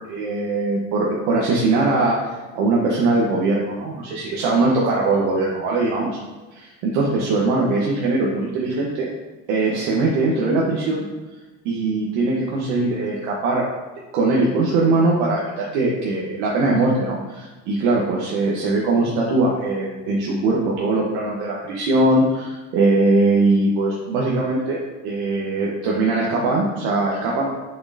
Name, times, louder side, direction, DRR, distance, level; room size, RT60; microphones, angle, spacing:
voice 1, 0.0-6.2 6.5-9.1 9.5-11.0 11.6-13.7 14.1-27.5, right 2 dB, 75° right, -3 dB, 1.3 m, -21 dB
6.8 x 6.2 x 2.8 m, 1.2 s
supercardioid pair, 110°, 39 cm